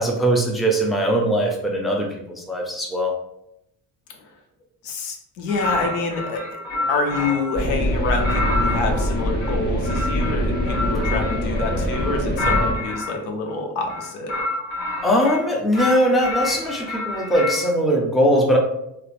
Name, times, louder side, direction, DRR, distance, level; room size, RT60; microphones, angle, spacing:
voice 1, 0.0-3.1 15.0-18.6, equal, ahead, 0 dB, 0.4 m, -20 dB
voice 2, 4.8-6.4 6.9-14.4, left 3 dB, 90° left, 3 dB, 0.6 m, -27 dB
sound 1, 5.5-7.6 8.1-13.2 13.8-15.4 15.7-17.7, left 2 dB, 60° left, 1.0 m, -28 dB
sound 2, 7.6-12.7, equal, 20° left, 0.8 m, -23 dB
3.0 x 2.0 x 2.4 m, 0.84 s
hypercardioid pair, 55°, 50 cm